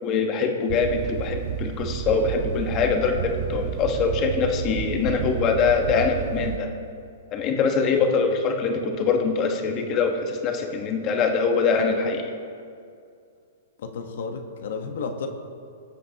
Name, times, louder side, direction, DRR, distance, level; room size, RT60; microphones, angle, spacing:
voice 1, 0.0-6.7 7.3-12.3, left 5 dB, 35° left, 3 dB, 1.4 m, -23 dB
sound 1, 0.7-6.6, right 8 dB, 45° right, 0.6 m, -31 dB
voice 2, 13.8-15.3, left 5 dB, 70° left, 6 dB, 1.2 m, -32 dB
18.5 x 8.0 x 2.9 m, 2.4 s
hypercardioid pair, 130°, 0 cm